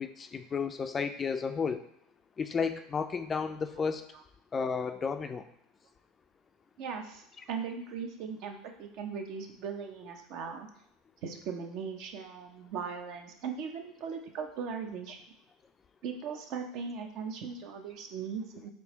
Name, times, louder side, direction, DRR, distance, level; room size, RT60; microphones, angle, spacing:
voice 1, 0.0-1.8 2.4-4.0 4.5-5.4, left 5 dB, 30° left, 9 dB, 0.3 m, -32 dB
voice 2, 6.8-10.7 11.2-15.2 16.0-18.7, right 6 dB, 55° right, 4 dB, 0.6 m, -39 dB
4.6 x 3.2 x 3.0 m, 0.74 s
hypercardioid pair, 75°, 0 cm